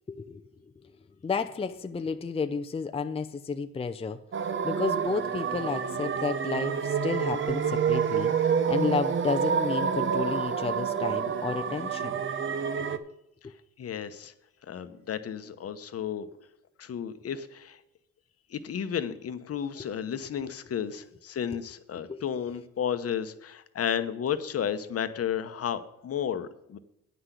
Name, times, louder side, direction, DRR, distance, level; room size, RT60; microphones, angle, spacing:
voice 1, 0.1-0.4 1.2-4.2 4.6-8.3 8.7-12.2 12.5-13.0 13.4-13.5 22.1-22.2, left 5 dB, 20° left, 7 dB, 0.6 m, -32 dB
sound 1, 4.3-13.0, right 6 dB, 40° right, 0.9 m, -28 dB
voice 2, 13.8-14.3 14.7-16.3 16.8-17.8 18.5-26.8, left 8 dB, 50° left, 11 dB, 1.0 m, -33 dB
9.5 x 6.0 x 8.2 m, 0.81 s
cardioid pair, 90°, 30 cm